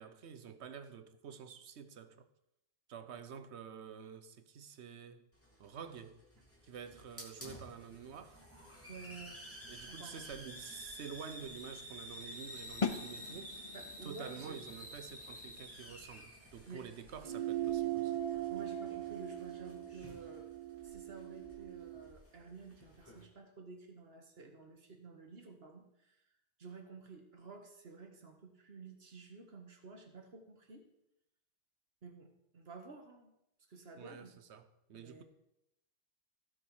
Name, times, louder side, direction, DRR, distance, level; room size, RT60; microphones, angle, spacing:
voice 1, 0.0-2.3 2.9-5.3 5.6-6.2 6.6-8.4 9.7-13.5 14.0-18.2 34.0-35.2, right 7 dB, 80° right, 1.1 m, -49 dB
Hiss, 5.3-23.2, equal, 10° left, 2.4 m, -52 dB
voice 2, 8.9-9.4 9.9-10.3 13.7-14.6 16.7-16.8 18.5-20.5 20.8-26.2 26.6-30.8 32.0-33.3 33.7-34.4 34.9-35.2, right 4 dB, 65° right, 1.8 m, -52 dB
sound 1, 12.8-18.5, left 5 dB, 35° left, 0.8 m, -44 dB
sound 2, 17.2-22.1, right 12 dB, 35° right, 0.9 m, -39 dB
16.5 x 6.3 x 4.8 m
omnidirectional pair, 1.1 m